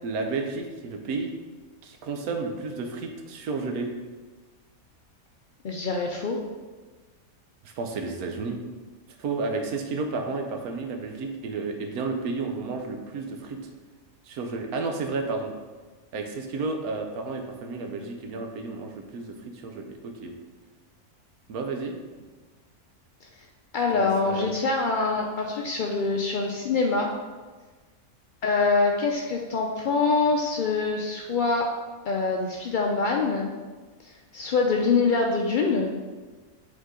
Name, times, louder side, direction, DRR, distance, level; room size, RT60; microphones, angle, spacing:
voice 1, 0.0-1.3 1.8-3.9 7.6-8.6 9.2-13.6 14.3-15.5 16.1-20.3 21.5-21.9 23.9-24.5, right 3 dB, 85° right, 4 dB, 1.3 m, -32 dB
voice 2, 5.6-6.4 23.2-23.3 23.7-27.1 28.4-31.7 32.0-33.5 34.0-35.9, left 4 dB, 70° left, 0 dB, 0.4 m, -25 dB
8.1 x 3.9 x 3.7 m, 1.3 s
omnidirectional pair, 1.5 m